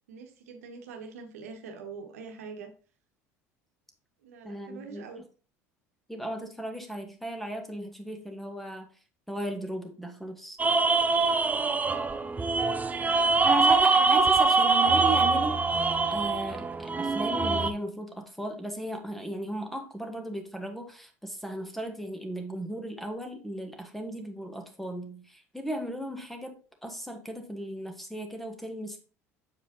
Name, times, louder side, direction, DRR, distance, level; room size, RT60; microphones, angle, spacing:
voice 1, 0.1-2.7 4.2-5.2 11.9-13.3, right 5 dB, 80° right, 4 dB, 1.1 m, -45 dB
voice 2, 4.4-5.0 6.1-8.9 9.3-10.6 13.4-26.5 26.8-29.0, right 1 dB, ahead, 5 dB, 1.4 m, -36 dB
sound 1, 10.6-17.7, right 4 dB, 20° right, 0.6 m, -24 dB
7.2 x 4.8 x 2.9 m, 0.37 s
hypercardioid pair, 70°, 8 cm